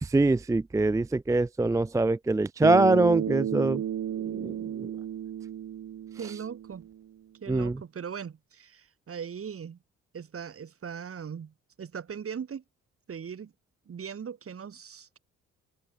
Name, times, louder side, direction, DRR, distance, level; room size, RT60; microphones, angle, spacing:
voice 1, 0.0-3.8 4.4-4.9 7.5-7.8, right 2 dB, 10° right, 0.5 m, -24 dB
Bass guitar, 2.6-7.0, right 10 dB, 65° right, 5.0 m, -32 dB
voice 2, 6.2-6.9 7.4-9.8 10.1-12.6 13.1-13.5 13.9-15.2, right 7 dB, 50° right, 5.0 m, -39 dB
cardioid pair, 90°, 30 cm